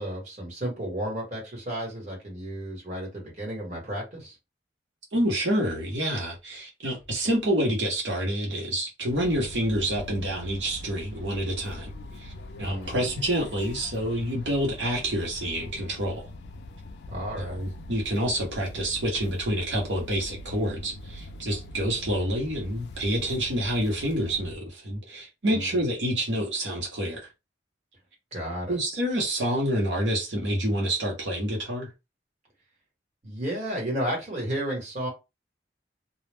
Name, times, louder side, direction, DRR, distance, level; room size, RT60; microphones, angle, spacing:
voice 1, 0.0-4.3 12.6-13.1 17.1-17.7 25.5-25.8 28.3-28.8 33.2-35.1, right 1 dB, 40° right, 1.2 m, -33 dB
voice 2, 5.1-11.9 12.2-12.3 12.6-16.2 17.4-27.3 28.7-31.9, right 1 dB, 80° right, 0.9 m, -28 dB
sound 1, 9.1-24.5, left 1 dB, 65° left, 0.3 m, -42 dB
2.2 x 2.1 x 3.3 m
head